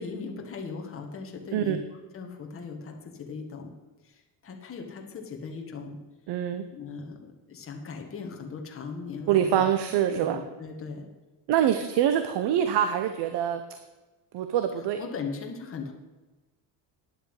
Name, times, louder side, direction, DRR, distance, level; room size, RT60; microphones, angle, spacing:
voice 1, 0.0-1.8 2.1-3.7 4.0-6.0 6.7-9.6 10.0-11.1 15.0-15.9, left 5 dB, 30° left, 2 dB, 1.7 m, -38 dB
voice 2, 6.3-6.6 9.3-10.4 11.5-13.6 14.3-15.0, right 10 dB, 70° right, 9 dB, 0.9 m, -25 dB
10.0 x 7.9 x 8.1 m, 1.2 s
cardioid pair, 145°, 42 cm